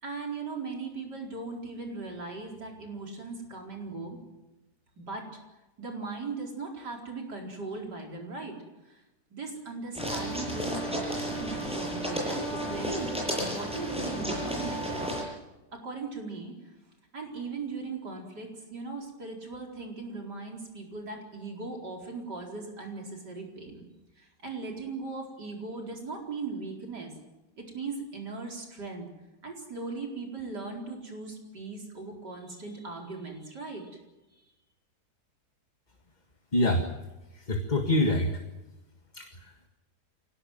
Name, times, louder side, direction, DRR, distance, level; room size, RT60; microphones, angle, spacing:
voice 1, 0.0-4.2 5.0-5.3 5.8-8.6 8.8-9.0 9.3-15.1 15.7-16.7 17.1-23.8 24.2-27.1 27.6-29.1 29.4-34.0 34.3-34.4, right 3 dB, 80° right, 1 dB, 5.1 m, -38 dB
sound 1, 9.9-15.2, equal, 5° right, 8.0 m, -32 dB
voice 2, 36.5-36.9 37.3-38.4 39.1-39.7, left 1 dB, 25° left, 4 dB, 1.8 m, -26 dB
25.5 x 18.5 x 9.4 m, 1.0 s
omnidirectional pair, 1.8 m